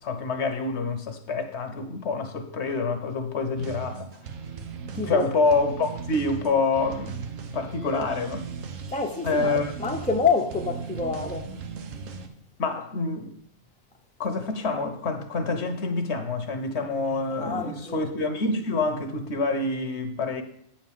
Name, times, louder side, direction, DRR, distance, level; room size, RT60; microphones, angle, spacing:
voice 1, 0.0-4.1 5.0-7.2 7.5-8.5 9.2-9.7 12.6-13.3 14.2-20.4, left 3 dB, 60° left, 1.2 m, -27 dB
sound 1, 3.6-12.3, right 6 dB, 85° right, 1.2 m, -37 dB
voice 2, 5.0-5.3 8.9-11.5 17.4-18.1, left 4 dB, 10° left, 0.6 m, -27 dB
8.8 x 4.4 x 7.3 m
omnidirectional pair, 1.3 m